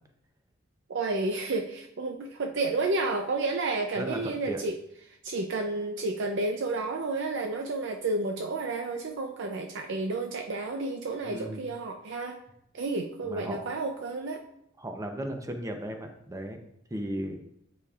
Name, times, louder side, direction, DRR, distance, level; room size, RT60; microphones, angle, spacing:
voice 1, 0.9-4.7 5.1-12.4 12.7-14.4, right 3 dB, 65° right, 3 dB, 0.5 m, -31 dB
voice 2, 4.0-4.6 11.2-11.7 13.2-13.7 14.8-16.6 16.9-17.4, right 1 dB, 15° right, 5 dB, 0.6 m, -35 dB
9.4 x 5.0 x 2.4 m, 0.78 s
head